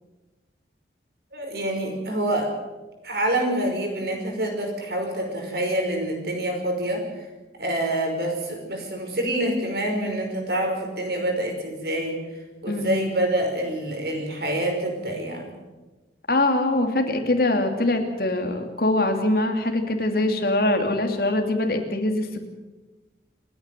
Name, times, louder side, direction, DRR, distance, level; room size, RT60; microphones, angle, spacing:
voice 1, 1.3-2.5 3.0-7.1 7.6-15.5, right 1 dB, 60° right, 3 dB, 5.5 m, -26 dB
voice 2, 12.7-13.1 16.3-22.5, left 2 dB, 55° left, 4 dB, 2.8 m, -23 dB
29.0 x 9.9 x 9.2 m, 1.2 s
head